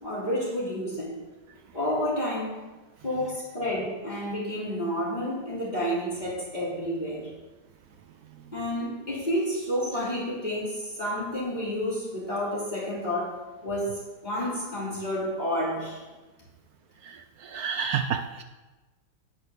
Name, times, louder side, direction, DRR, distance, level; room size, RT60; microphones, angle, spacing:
voice 1, 0.0-1.2 1.7-2.6 3.0-7.3 8.5-16.0, equal, 20° left, -8 dB, 3.0 m, -30 dB
voice 2, 17.0-18.4, right 7 dB, 75° right, 7 dB, 0.8 m, -30 dB
9.2 x 5.2 x 6.7 m, 1.2 s
omnidirectional pair, 2.0 m